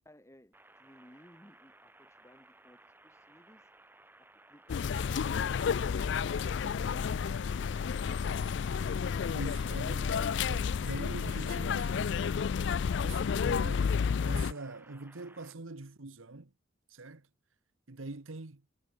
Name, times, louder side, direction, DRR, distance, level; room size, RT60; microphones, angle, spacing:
voice 1, 0.1-8.1, equal, 15° left, 3.0 m, -60 dB
sound 1, 0.5-15.5, right 2 dB, 10° right, 4.1 m, -59 dB
sound 2, 4.7-14.5, left 6 dB, 60° left, 0.4 m, -31 dB
voice 2, 9.3-12.4 13.0-16.5 16.9-17.3 17.9-18.6, right 2 dB, 90° right, 1.3 m, -44 dB
head